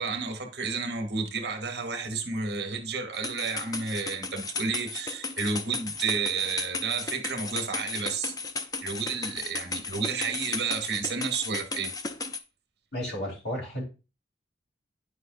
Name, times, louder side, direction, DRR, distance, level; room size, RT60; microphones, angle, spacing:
voice 1, 0.0-8.3 8.8-11.9, right 5 dB, 65° right, 1.3 m, -31 dB
sound 1, 3.1-12.4, left 4 dB, 20° left, 0.4 m, -35 dB
voice 2, 12.9-13.8, equal, 70° left, 3.2 m, -33 dB
9.8 x 5.0 x 2.6 m
head